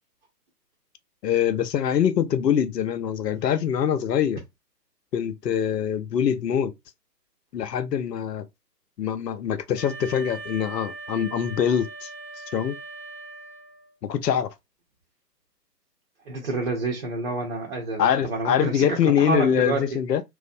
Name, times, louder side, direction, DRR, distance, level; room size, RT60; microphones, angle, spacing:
voice 1, 1.2-4.4 5.1-6.7 7.5-8.5 9.0-12.1 12.5-12.7 14.0-14.5 18.0-20.2, left 8 dB, 70° left, 0.6 m, -24 dB
Wind instrument woodwind instrument, 9.8-14.0, right 3 dB, 80° right, 0.6 m, -40 dB
voice 2, 16.3-19.9, right 3 dB, 40° right, 0.6 m, -28 dB
2.4 x 2.0 x 2.5 m
figure-of-eight pair, 140°, 50 cm